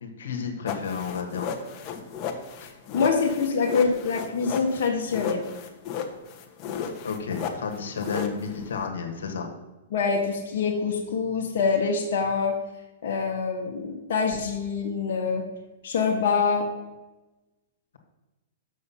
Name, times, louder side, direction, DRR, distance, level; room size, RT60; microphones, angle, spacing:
voice 1, 0.0-1.5 7.0-9.5, left 6 dB, 80° left, 3 dB, 1.6 m, -31 dB
sound 1, 0.7-8.9, left 7 dB, 35° left, 1.3 m, -34 dB
voice 2, 2.6-5.4 9.9-12.5 13.0-15.4 15.8-16.7, left 5 dB, 65° left, -1 dB, 1.3 m, -25 dB
6.8 x 6.5 x 5.6 m, 1.1 s
hypercardioid pair, 125°, 0 cm